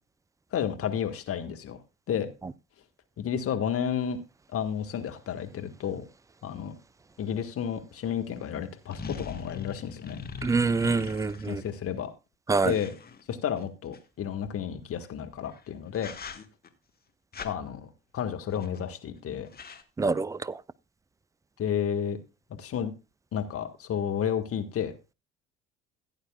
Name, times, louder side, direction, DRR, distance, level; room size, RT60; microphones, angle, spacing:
voice 1, 0.5-1.8 2.1-2.3 3.2-4.2 4.5-6.0 6.4-6.7 7.2-10.2 11.5-12.1 12.6-13.0 13.3-16.1 17.4-19.5 21.6-22.2 22.6-22.9 23.3-25.0, left 8 dB, 45° left, 1.6 m, -31 dB
sound 1, 7.9-8.0 8.9-11.7 12.6-14.0 15.4-15.6 15.9-16.7 17.3-17.5 18.5-18.9 19.2-19.3 19.5-19.8, left 5 dB, 30° left, 1.4 m, -41 dB
voice 2, 10.4-11.6 12.5-12.7 20.0-20.4, right 4 dB, 10° right, 0.4 m, -25 dB
16.0 x 9.0 x 2.3 m
figure-of-eight pair, 60°, 33 cm